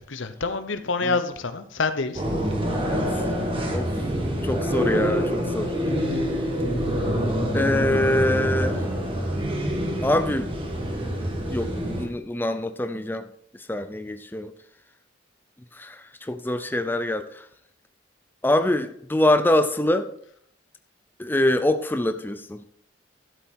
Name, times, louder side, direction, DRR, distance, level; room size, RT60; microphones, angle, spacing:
voice 1, 0.0-2.2, left 4 dB, 85° left, 10 dB, 1.0 m, -27 dB
sound 1, 2.2-12.1, equal, 30° right, 1.6 m, -26 dB
voice 2, 4.4-5.8 7.5-8.8 10.0-10.5 11.5-13.3 13.7-14.5 15.8-17.4 18.4-20.1 21.2-22.6, left 1 dB, 10° left, 9 dB, 0.5 m, -24 dB
12.5 x 7.4 x 4.6 m, 0.66 s
head